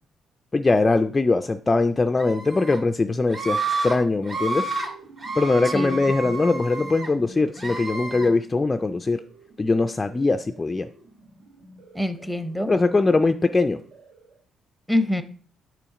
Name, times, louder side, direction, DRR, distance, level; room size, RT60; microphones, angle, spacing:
voice 1, 0.5-4.7 5.4-9.2 9.6-10.9 12.7-13.8, left 3 dB, 25° left, 7 dB, 0.3 m, -21 dB
Screaming, 2.2-2.8 3.3-3.9 4.2-4.9 5.2-7.1 7.6-8.3, right 3 dB, 50° right, 2.1 m, -30 dB
sound 1, 3.9-14.4, right 1 dB, 90° right, 2.2 m, -47 dB
voice 2, 5.7-6.4 11.9-12.7 14.9-15.2, left 1 dB, 5° right, 10 dB, 0.7 m, -26 dB
6.9 x 2.9 x 4.9 m, 0.41 s
cardioid pair, 90°, 0 cm